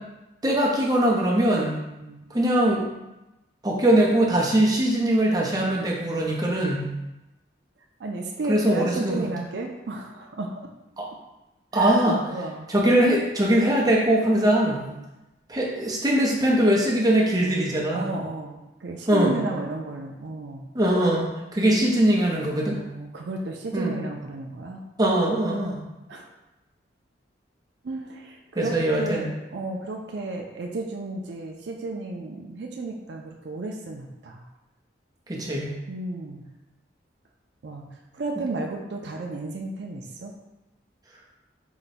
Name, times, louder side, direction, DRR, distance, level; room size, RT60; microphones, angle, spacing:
voice 1, 0.4-1.8 2.3-2.9 3.6-6.9 8.5-9.3 11.0-11.1 11.7-12.2 12.7-14.8 15.5-18.1 19.1-19.3 20.7-22.8 23.7-23.9 25.0-25.8 28.6-29.3 35.3-35.7, right 1 dB, 20° right, -3 dB, 0.7 m, -21 dB
voice 2, 2.0-2.3 8.0-10.7 11.7-12.7 14.8-15.1 17.9-20.7 22.7-24.8 25.6-25.8 26.1-26.3 27.8-34.5 35.9-36.5 37.6-40.4, right 2 dB, 70° right, 2 dB, 0.4 m, -33 dB
4.8 x 2.2 x 4.1 m, 0.98 s
head